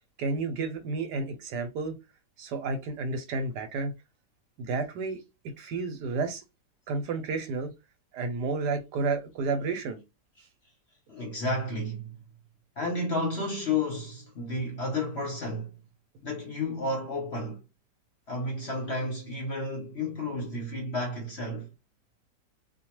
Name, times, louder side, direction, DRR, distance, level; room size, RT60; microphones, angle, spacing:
voice 1, 0.2-1.9 2.4-3.9 4.6-5.2 5.6-6.4 6.9-7.7 8.1-10.0, right 4 dB, 75° right, 1.2 m, -31 dB
voice 2, 11.1-12.2 12.8-15.7 16.2-17.6 18.3-21.7, left 2 dB, 55° left, 0.8 m, -31 dB
2.7 x 2.2 x 2.9 m
omnidirectional pair, 1.9 m